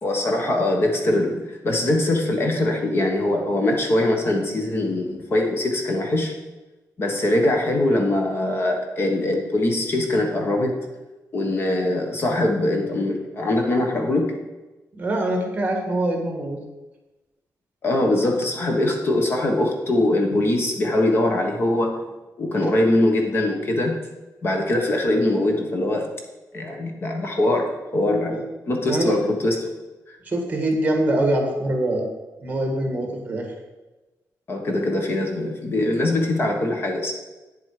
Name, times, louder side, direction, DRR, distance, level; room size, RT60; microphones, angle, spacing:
voice 1, 0.0-6.3 7.0-10.8 11.3-14.3 17.8-22.0 22.4-24.0 24.4-26.1 26.5-29.7 30.1-30.2 34.5-37.1, left 1 dB, 35° left, 3 dB, 1.2 m, -22 dB
voice 2, 15.0-16.6 28.3-28.4 28.8-29.2 30.2-32.1 32.4-33.5, right 1 dB, 25° right, 2 dB, 1.8 m, -24 dB
9.4 x 7.7 x 5.0 m, 1.1 s
wide cardioid pair, 175°, 6 cm